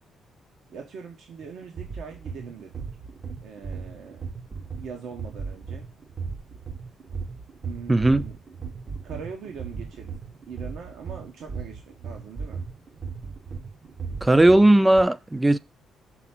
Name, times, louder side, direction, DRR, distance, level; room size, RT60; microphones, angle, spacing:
voice 1, 0.7-2.7 3.4-4.2 4.8-5.9 7.6-8.4 9.0-10.2 10.5-12.6, right 6 dB, 80° right, 1.1 m, -41 dB
sound 1, 1.4-15.0, right 5 dB, 45° right, 0.7 m, -37 dB
voice 2, 7.9-8.2 14.2-15.6, right 1 dB, 15° right, 0.4 m, -17 dB
6.1 x 3.5 x 5.8 m
cardioid pair, 90°, 0 cm